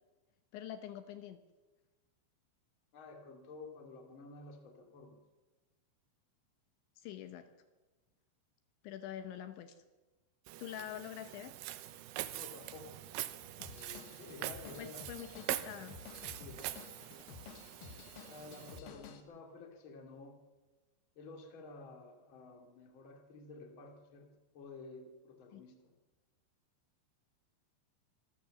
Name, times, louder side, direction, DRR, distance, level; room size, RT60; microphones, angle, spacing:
voice 1, 0.5-1.4 7.0-7.5 8.8-9.8 10.6-11.5 14.8-16.0 25.5-25.6, left 11 dB, 75° left, 9 dB, 3.2 m, -45 dB
voice 2, 2.9-5.2 12.3-13.0 13.7-15.0 16.4-16.7 18.3-20.4 21.2-25.9, left 3 dB, 35° left, 3 dB, 2.4 m, -52 dB
Walk footsteps, 10.5-18.8, right 14 dB, 75° right, 2.6 m, -44 dB
Drum kit / Drum, 13.6-19.2, left 7 dB, 60° left, 2.6 m, -53 dB
25.5 x 14.0 x 7.6 m, 1.2 s
omnidirectional pair, 5.6 m